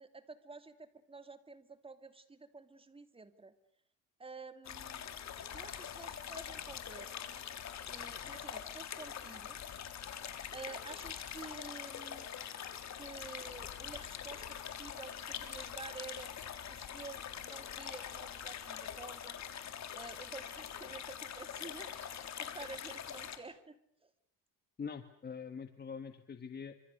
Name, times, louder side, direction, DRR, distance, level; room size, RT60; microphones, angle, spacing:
voice 1, 0.0-3.5 4.2-5.1 5.5-7.5 7.9-9.6 10.5-12.3 12.9-16.3 16.7-19.4 19.9-23.8 24.0-24.1, right 3 dB, 15° right, 10 dB, 2.7 m, -50 dB
sound 1, 4.6-23.4, left 9 dB, 50° left, 3.6 m, -44 dB
voice 2, 24.8-26.7, left 6 dB, 30° left, 9 dB, 1.8 m, -44 dB
29.0 x 26.0 x 6.7 m, 0.67 s
cardioid pair, 125°, 35 cm